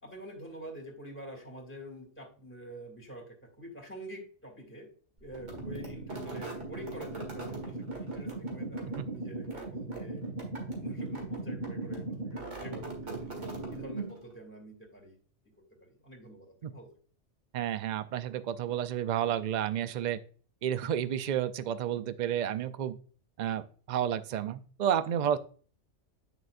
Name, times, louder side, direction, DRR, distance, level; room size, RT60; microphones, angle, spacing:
voice 1, 0.0-4.9 5.2-10.2 10.6-13.4 13.7-15.2 15.4-17.0, equal, 10° left, -1 dB, 2.6 m, -47 dB
sound 1, 5.3-14.3, right 2 dB, 80° right, 2.2 m, -38 dB
voice 2, 17.5-20.2 20.6-23.0 23.4-25.4, right 10 dB, 55° right, 13 dB, 0.5 m, -31 dB
9.0 x 6.5 x 2.5 m, 0.42 s
omnidirectional pair, 1.2 m